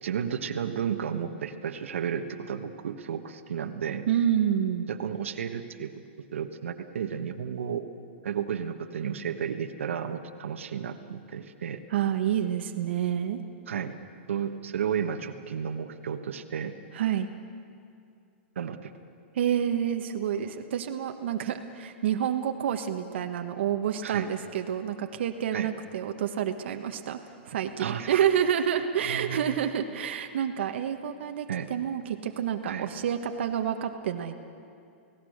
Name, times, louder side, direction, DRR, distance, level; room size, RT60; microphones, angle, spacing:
voice 1, 0.0-4.0 4.9-5.9 6.3-7.9 8.2-11.8 13.7-13.9 14.3-16.7 18.5-18.9 24.0-24.3 25.5-25.7 27.8-28.2 29.0-29.5 31.5-31.7 32.6-32.9, right 8 dB, 90° right, 7 dB, 1.4 m, -32 dB
voice 2, 4.1-4.9 11.9-13.4 16.9-17.3 19.3-27.2 27.4-34.4, right 9 dB, 65° right, 5 dB, 1.2 m, -28 dB
30.0 x 17.5 x 6.5 m, 2.5 s
hypercardioid pair, 160°, 7 cm